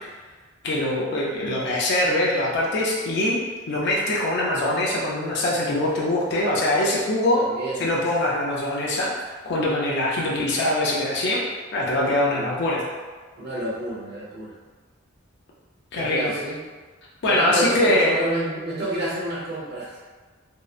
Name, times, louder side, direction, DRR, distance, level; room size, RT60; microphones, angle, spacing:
voice 1, 0.6-3.4 3.7-7.4 7.8-9.1 9.4-11.4 11.7-12.8 15.9-16.3 17.2-18.2, left 1 dB, 55° left, -4 dB, 0.4 m, -23 dB
voice 2, 7.3-7.9 12.3-12.5 13.4-14.5 15.9-16.6 17.2-20.0, right 1 dB, 50° right, -6 dB, 0.8 m, -29 dB
2.7 x 2.0 x 2.3 m, 1.4 s
head